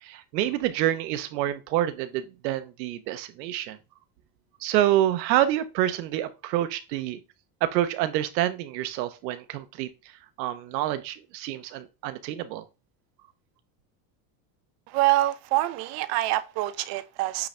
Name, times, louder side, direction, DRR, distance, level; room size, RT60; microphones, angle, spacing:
voice 1, 0.0-3.8 4.6-7.2 7.6-9.9 10.4-12.6, right 13 dB, 85° right, 1.1 m, -27 dB
voice 2, 14.9-17.5, right 16 dB, 50° right, 0.6 m, -25 dB
8.7 x 4.0 x 3.3 m
cardioid pair, 160°, 49 cm